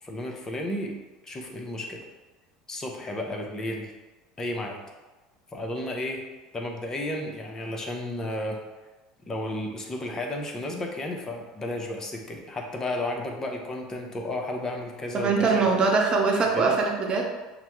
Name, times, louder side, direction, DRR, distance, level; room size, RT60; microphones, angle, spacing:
voice 1, 0.0-1.0 1.2-2.1 2.7-3.9 4.4-4.8 5.5-6.2 6.5-8.6 9.3-15.7 16.5-16.7, left 1 dB, 25° left, 1 dB, 0.8 m, -32 dB
voice 2, 15.1-17.2, right 4 dB, 40° right, 1 dB, 0.8 m, -22 dB
5.8 x 2.2 x 3.0 m, 1.2 s
hypercardioid pair, 85°, 2 cm